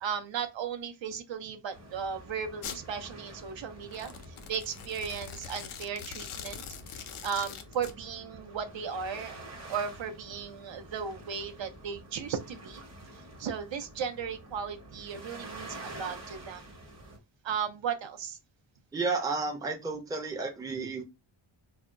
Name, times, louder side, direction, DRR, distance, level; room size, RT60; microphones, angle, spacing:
voice 1, 0.0-9.4 9.7-12.8 13.1-16.8 17.4-18.4, right 7 dB, 65° right, 0.5 m, -36 dB
sound 1, 1.7-17.2, right 1 dB, 35° right, 0.8 m, -48 dB
Domestic sounds home sounds, 2.6-2.8 3.8-7.9, left 8 dB, 85° left, 0.5 m, -43 dB
voice 2, 18.9-21.0, right 3 dB, 10° right, 0.4 m, -32 dB
2.2 x 2.0 x 3.6 m
wide cardioid pair, 155°, 49 cm